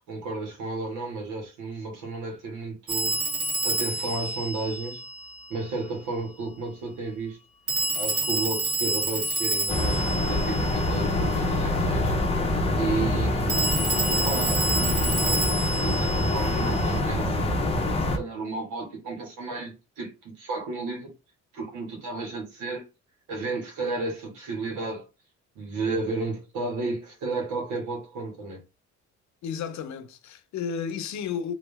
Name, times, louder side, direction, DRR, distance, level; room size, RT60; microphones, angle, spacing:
voice 1, 0.1-3.2 3.6-5.0 5.5-7.4 7.9-12.2 12.8-13.6 14.1-17.5 18.1-21.1 21.5-22.8 23.3-25.1 25.6-28.6, right 3 dB, 85° right, 2.1 m, -33 dB
Telephone, 2.9-5.5 7.7-11.3 13.5-17.0, right 2 dB, 50° right, 1.4 m, -29 dB
sound 1, 9.7-18.2, left 1 dB, 20° left, 0.7 m, -25 dB
voice 2, 29.4-31.5, left 7 dB, 65° left, 0.7 m, -32 dB
3.8 x 3.1 x 3.4 m
cardioid pair, 145°, 30 cm